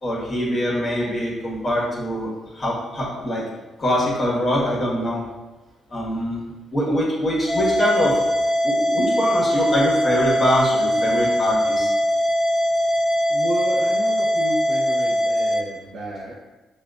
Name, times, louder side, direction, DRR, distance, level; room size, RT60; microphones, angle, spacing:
voice 1, 0.0-3.4 3.8-5.2 5.9-6.4 6.7-8.2 8.6-11.9, equal, 25° left, -5 dB, 1.5 m, -23 dB
sound 1, 7.5-15.6, equal, 15° right, 1.0 m, -21 dB
voice 2, 13.3-16.3, right 1 dB, 55° right, -6 dB, 0.7 m, -31 dB
5.6 x 2.4 x 2.4 m, 1.1 s
cardioid pair, 90°, 0 cm